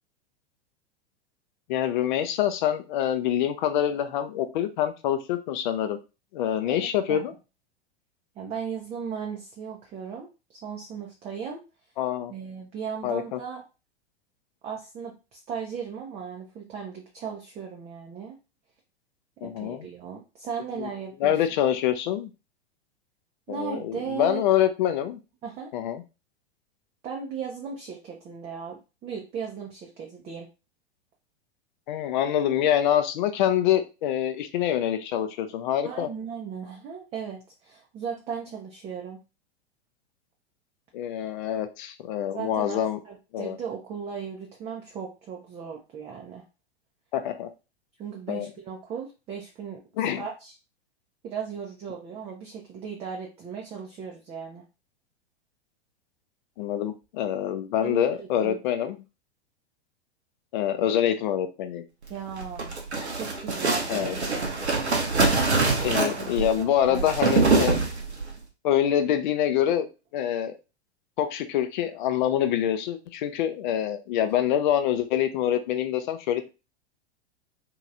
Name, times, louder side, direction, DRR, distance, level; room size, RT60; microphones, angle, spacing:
voice 1, 1.7-6.0 6.3-7.3 12.0-12.3 13.0-13.4 19.4-19.8 20.8-20.9 21.2-22.3 23.5-25.2 25.7-26.0 31.9-36.1 40.9-43.0 43.3-43.6 47.1-47.5 48.3-48.5 50.0-50.2 56.6-59.0 60.5-61.8 63.9-64.2 65.8-67.8 68.6-69.9 70.1-70.5 71.2-76.5, left 10 dB, 45° left, 9 dB, 0.5 m, -25 dB
voice 2, 8.4-11.6 12.3-13.6 14.6-18.4 19.4-21.4 23.5-24.4 25.4-25.7 27.0-30.5 35.8-39.2 42.3-42.8 43.0-46.4 48.0-50.5 51.2-54.6 57.8-58.9 62.1-62.8 63.1-64.5 66.1-67.1, right 7 dB, 20° right, 0 dB, 0.5 m, -37 dB
sound 1, 62.3-68.3, right 3 dB, 80° right, 0.9 m, -24 dB
2.9 x 2.9 x 2.4 m, 0.29 s
figure-of-eight pair, 100°, 33 cm